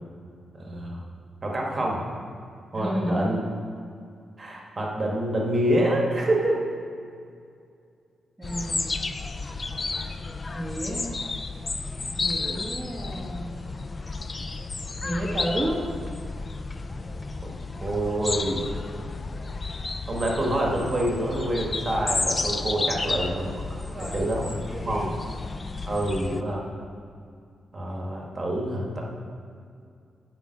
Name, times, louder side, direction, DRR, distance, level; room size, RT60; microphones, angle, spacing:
voice 1, 0.6-1.0 1.4-2.0 2.7-3.4 4.4-6.6 17.4-17.5 17.8-18.6 20.1-23.7 24.0-25.1 25.8-26.6 27.7-29.0, right 1 dB, 30° right, -1 dB, 1.6 m, -27 dB
voice 2, 2.7-3.3 8.4-8.9 10.5-11.1 12.0-13.5 15.0-15.8 22.9-23.4 23.7-24.3 24.5-25.1, equal, 10° right, -5 dB, 1.3 m, -32 dB
sound 1, 8.4-26.4, left 3 dB, 30° left, 0.4 m, -32 dB
9.0 x 4.9 x 6.5 m, 2.4 s
cardioid pair, 100°, 0 cm